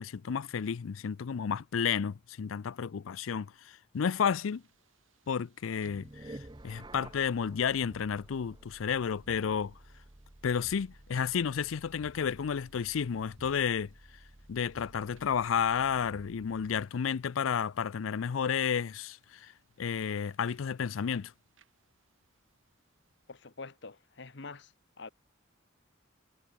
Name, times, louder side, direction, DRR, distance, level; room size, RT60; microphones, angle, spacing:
voice 1, 0.0-4.6 5.3-6.4 6.6-9.7 10.4-13.9 14.5-19.5 19.8-21.3, left 7 dB, 90° left, 0.5 m, -31 dB
sound 1, 3.9-23.4, right 7 dB, 85° right, 7.0 m, -72 dB
sound 2, 5.8-17.0, right 1 dB, 20° right, 0.9 m, -52 dB
voice 2, 23.3-25.1, left 3 dB, 60° left, 1.3 m, -46 dB
head